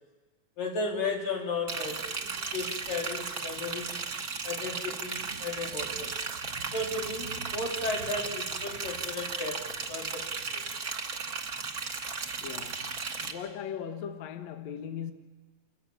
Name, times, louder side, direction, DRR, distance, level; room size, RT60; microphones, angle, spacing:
voice 1, 0.6-4.0 4.4-6.1 6.7-10.2 10.5-10.6 12.0-12.2, left 3 dB, 90° left, 5.2 m, -35 dB
Liquid, 1.7-13.3, right 5 dB, 35° right, 1.6 m, -35 dB
voice 2, 12.4-15.1, left 8 dB, 65° left, 2.2 m, -39 dB
28.5 x 15.5 x 8.7 m
omnidirectional pair, 3.8 m